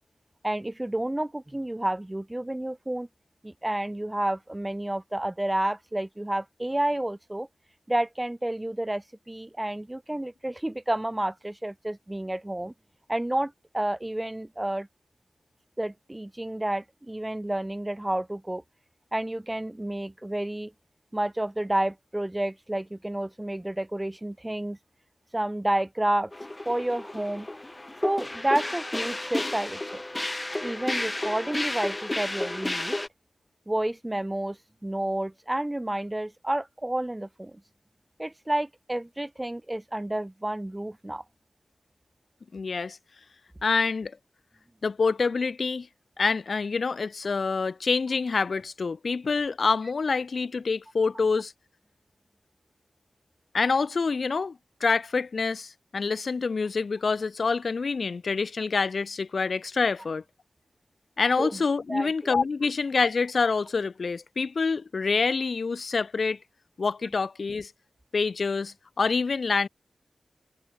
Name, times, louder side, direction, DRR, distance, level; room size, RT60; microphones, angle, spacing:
voice 1, 0.4-3.1 3.4-7.5 7.9-12.7 13.1-14.9 15.8-18.6 19.1-20.7 21.1-24.8 25.3-26.3 26.7-27.5 28.0-30.0 30.6-33.0 33.7-37.6 38.2-41.2 61.4-61.6 61.9-62.3, right 1 dB, 15° right, 2.5 m, -30 dB
sound 1, 26.3-33.1, left 1 dB, 20° left, 3.0 m, -32 dB
voice 2, 42.5-43.0 43.6-44.1 44.8-45.9 46.2-51.5 53.5-54.6 54.8-60.2 61.2-66.4 66.8-67.7 68.1-69.7, left 4 dB, 60° left, 4.0 m, -26 dB
wide cardioid pair, 110°, 0 cm